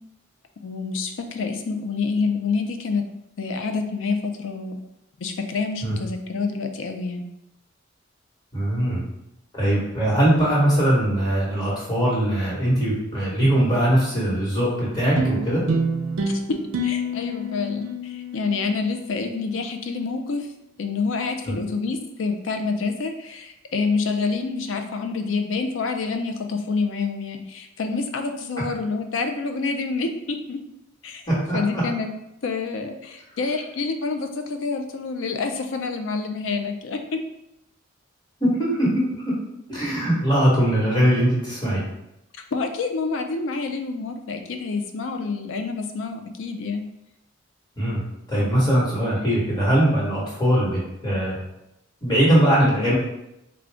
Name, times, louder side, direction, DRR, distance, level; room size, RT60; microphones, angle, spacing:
voice 1, 0.6-3.0 3.4-4.7 5.2-7.2 16.2-20.5 20.8-30.6 31.0-31.2 31.5-32.1 32.4-37.2 42.5-46.8, left 4 dB, 75° left, 6 dB, 0.4 m, -27 dB
voice 2, 8.5-9.0 9.5-15.6 21.5-21.6 31.3-31.8 38.4-39.3 39.7-41.8 47.8-48.0 48.3-51.4 52.0-52.9, right 1 dB, 20° left, -6 dB, 1.3 m, -21 dB
sound 1, 15.2-19.8, right 1 dB, 85° right, 0.4 m, -28 dB
3.7 x 2.3 x 3.4 m, 0.86 s
head